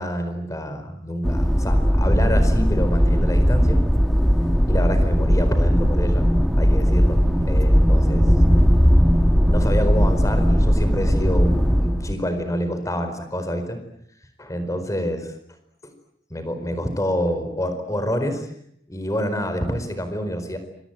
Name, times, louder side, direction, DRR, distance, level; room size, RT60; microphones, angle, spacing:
voice 1, 0.0-3.8 4.7-6.3 6.6-8.2 9.5-13.8 14.4-15.2 15.8-15.9 16.3-18.5 18.9-20.6, equal, 20° left, 9 dB, 4.6 m, -27 dB
sound 1, 1.2-12.1, equal, ahead, 2.2 m, -18 dB
27.5 x 24.0 x 9.1 m, 0.73 s
head